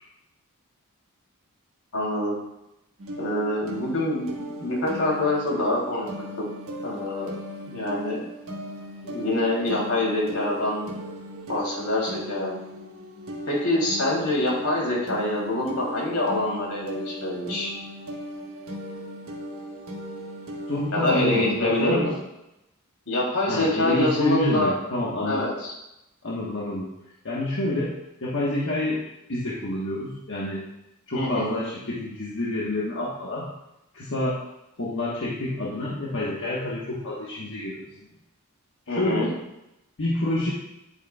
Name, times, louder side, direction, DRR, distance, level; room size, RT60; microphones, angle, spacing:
voice 1, 1.9-2.4 3.2-6.1 6.8-7.3 7.7-8.2 9.0-10.9 11.5-12.5 13.5-17.7 20.9-22.1 23.1-24.7 25.2-25.7 31.1-31.6 38.9-39.3, left 1 dB, 75° left, -3 dB, 3.2 m, -25 dB
sound 1, 3.0-21.5, equal, 70° right, 1.4 m, -37 dB
voice 2, 20.7-22.1 23.5-25.5 26.2-26.9 27.2-27.9 28.2-29.0 29.3-30.6 31.1-33.5 33.9-34.4 34.8-38.1 38.9-39.3 40.0-40.5, left 1 dB, 60° left, -6 dB, 1.4 m, -28 dB
10.5 x 8.4 x 2.4 m, 0.88 s
head